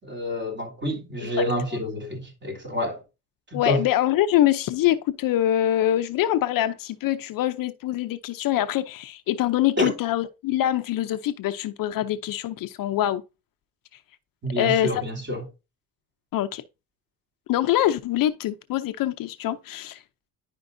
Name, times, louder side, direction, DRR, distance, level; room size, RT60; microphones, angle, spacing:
voice 1, 0.0-3.0 3.5-3.8 9.8-9.9 14.4-15.4, left 1 dB, 30° right, 3.1 m, -28 dB
voice 2, 3.5-13.2 14.6-15.0 16.3-16.6 17.5-20.0, left 12 dB, 60° left, 0.6 m, -24 dB
10.5 x 5.3 x 2.6 m
cardioid pair, 115°, 37 cm